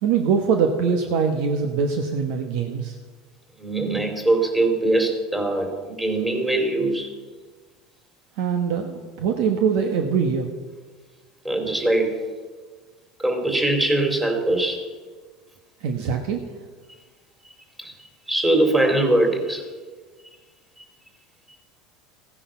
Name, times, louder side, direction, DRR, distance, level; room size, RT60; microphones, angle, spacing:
voice 1, 0.0-2.9 8.4-10.5 15.8-16.4, right 6 dB, 70° right, 5 dB, 1.3 m, -23 dB
voice 2, 3.6-7.1 11.4-12.2 13.2-14.8 17.8-17.9 18.3-19.6, right 2 dB, 10° right, 4 dB, 2.9 m, -22 dB
15.5 x 10.0 x 5.8 m, 1.4 s
supercardioid pair, 130°, 0 cm